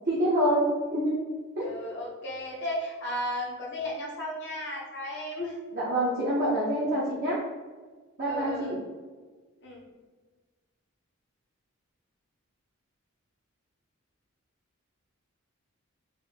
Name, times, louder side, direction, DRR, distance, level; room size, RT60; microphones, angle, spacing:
voice 1, 0.1-1.2 1.6-1.7 5.7-7.4 8.2-8.8, right 1 dB, 45° right, -7 dB, 0.7 m, -26 dB
voice 2, 1.6-5.5 8.3-8.7 9.6-9.8, left 1 dB, 55° left, -3 dB, 0.8 m, -34 dB
4.1 x 2.7 x 2.7 m, 1.4 s
head